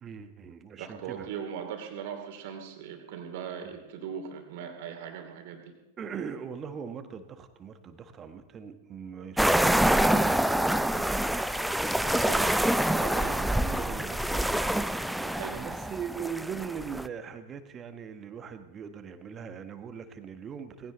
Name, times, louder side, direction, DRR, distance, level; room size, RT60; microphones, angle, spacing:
voice 1, 0.0-1.3 6.0-20.9, right 7 dB, 25° right, 9 dB, 1.3 m, -41 dB
voice 2, 0.8-5.7 12.2-12.5 13.0-13.3 15.2-15.8, right 8 dB, 50° right, 4 dB, 2.8 m, -39 dB
sound 1, 9.4-17.1, right 1 dB, ahead, 0.5 m, -26 dB
19.0 x 16.5 x 4.0 m, 1.0 s
figure-of-eight pair, 90°, 0 cm